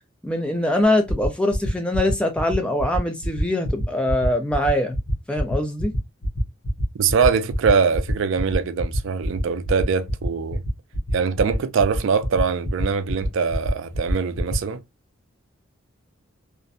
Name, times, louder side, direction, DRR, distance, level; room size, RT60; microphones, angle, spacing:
voice 1, 0.2-5.0 5.3-5.9, left 1 dB, 5° left, 0.4 m, -23 dB
sound 1, 1.1-14.6, equal, 80° left, 0.7 m, -27 dB
voice 2, 6.9-10.6 11.1-14.8, right 5 dB, 65° right, 0.3 m, -22 dB
2.5 x 2.1 x 2.4 m
head